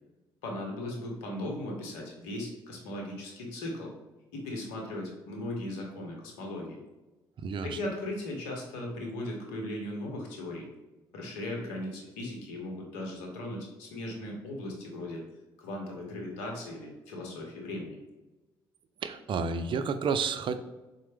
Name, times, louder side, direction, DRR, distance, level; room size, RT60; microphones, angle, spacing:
voice 1, 0.4-3.9 4.3-6.8 7.6-10.7 11.1-15.2 15.6-18.0, left 1 dB, 85° left, 0 dB, 0.8 m, -37 dB
voice 2, 7.4-7.8 19.0-20.6, right 5 dB, 50° right, 10 dB, 0.4 m, -30 dB
4.2 x 2.0 x 3.3 m, 1.1 s
hypercardioid pair, 55°, 11 cm